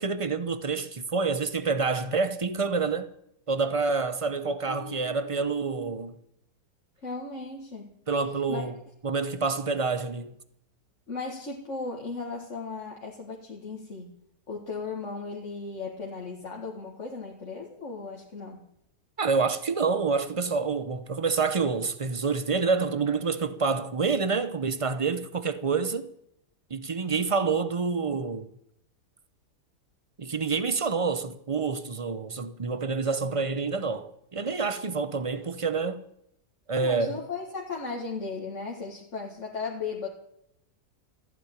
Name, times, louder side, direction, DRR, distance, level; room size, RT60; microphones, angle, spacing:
voice 1, 0.0-3.1 3.5-6.1 8.1-8.8 9.0-10.3 19.2-26.1 26.7-28.5 30.2-36.0 36.7-37.2, right 4 dB, 40° right, 0.5 m, -27 dB
voice 2, 4.7-5.9 7.0-8.0 8.5-8.6 11.1-14.1 14.5-18.6 27.4-27.5 36.8-40.1, left 4 dB, 45° left, 2.0 m, -36 dB
15.0 x 8.7 x 9.9 m
omnidirectional pair, 1.8 m